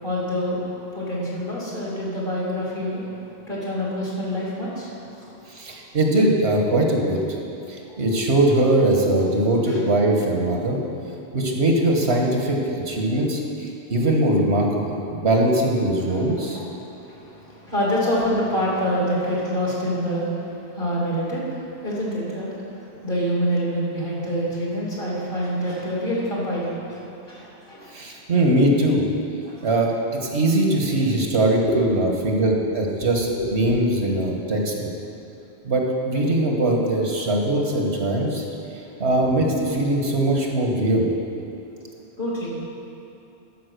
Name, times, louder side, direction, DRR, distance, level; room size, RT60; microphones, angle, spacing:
voice 1, 0.0-5.4 7.9-8.0 9.7-9.8 16.1-16.2 16.5-27.9 29.4-29.7 31.7-32.3 33.4-33.5 42.2-42.5, equal, 50° left, -5 dB, 2.8 m, -27 dB
voice 2, 5.5-7.2 7.7-10.8 11.3-16.6 27.9-29.0 29.6-34.9 35.6-38.4 39.0-41.1, right 1 dB, 80° right, 0 dB, 1.7 m, -21 dB
13.0 x 5.4 x 6.7 m, 2.9 s
omnidirectional pair, 1.1 m